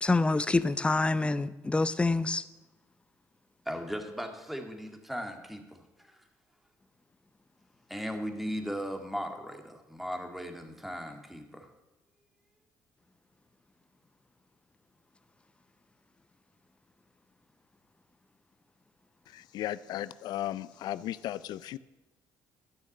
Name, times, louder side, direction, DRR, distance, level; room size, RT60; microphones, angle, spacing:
voice 1, 0.0-2.4, left 3 dB, 15° left, 0.6 m, -26 dB
voice 2, 3.7-6.1 7.9-11.7, equal, ahead, 1.9 m, -37 dB
voice 3, 19.3-21.8, left 13 dB, 75° left, 0.4 m, -36 dB
13.0 x 6.4 x 8.5 m
cardioid pair, 95°, 7 cm